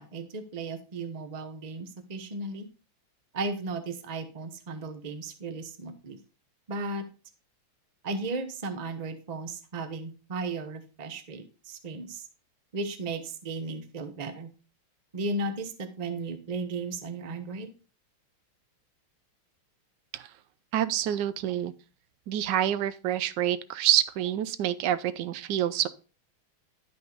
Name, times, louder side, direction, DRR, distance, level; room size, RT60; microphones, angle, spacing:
voice 1, 0.0-2.7 3.3-6.2 6.7-7.0 8.0-12.3 12.7-14.5 15.1-17.7, right 3 dB, 45° right, 8 dB, 0.5 m, -35 dB
voice 2, 20.7-21.7 22.3-25.9, right 11 dB, 75° right, 15 dB, 1.0 m, -27 dB
11.5 x 5.3 x 3.9 m, 0.36 s
omnidirectional pair, 2.3 m